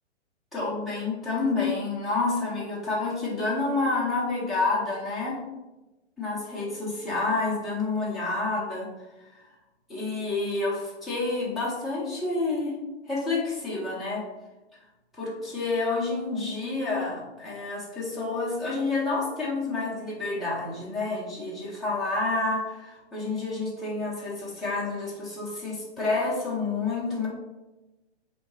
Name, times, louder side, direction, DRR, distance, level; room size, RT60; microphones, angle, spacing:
voice 1, 0.5-5.4 6.2-8.9 9.9-12.8 13.1-14.2 15.1-27.3, left 3 dB, ahead, -9 dB, 0.5 m, -29 dB
5.0 x 2.7 x 3.1 m, 1.1 s
hypercardioid pair, 140°, 34 cm